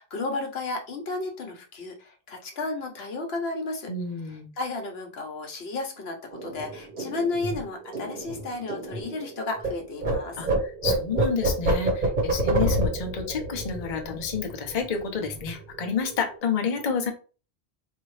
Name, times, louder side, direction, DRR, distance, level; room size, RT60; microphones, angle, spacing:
voice 1, 0.0-3.9 4.2-10.4, left 3 dB, 75° left, 3 dB, 1.1 m, -33 dB
voice 2, 3.9-4.5 10.4-17.1, left 6 dB, 40° left, 3 dB, 0.7 m, -29 dB
sound 1, 6.3-9.7 10.0-15.0 15.3-15.5 15.8-16.3, right 1 dB, 50° right, 1.1 m, -28 dB
4.1 x 2.7 x 3.2 m, 0.35 s
omnidirectional pair, 1.1 m